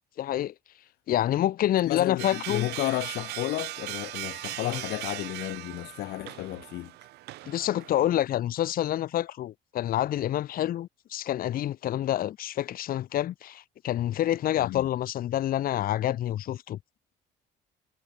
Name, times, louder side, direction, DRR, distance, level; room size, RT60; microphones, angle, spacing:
voice 1, 0.2-0.5 1.1-2.7 4.6-4.8 7.5-16.8, left 12 dB, 60° left, 1.2 m, -27 dB
voice 2, 1.8-6.9 14.6-14.9, left 17 dB, 80° left, 1.3 m, -32 dB
sound 1, 2.2-8.1, right 18 dB, 80° right, 1.1 m, -39 dB
cardioid pair, 110°, 17 cm